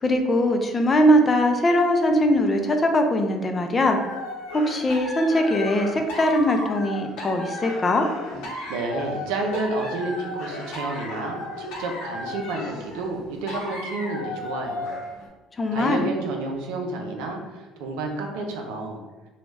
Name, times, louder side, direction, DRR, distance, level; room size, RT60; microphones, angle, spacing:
voice 1, 0.0-4.0 4.5-8.1 15.6-16.1, left 1 dB, 30° left, 4 dB, 0.5 m, -21 dB
sound 1, 3.9-15.3, left 1 dB, 75° left, 0.8 m, -35 dB
voice 2, 8.7-15.0 15.7-19.0, right 2 dB, 80° right, 2 dB, 0.5 m, -30 dB
2.9 x 2.3 x 3.3 m, 1.2 s
hypercardioid pair, 65°, 0 cm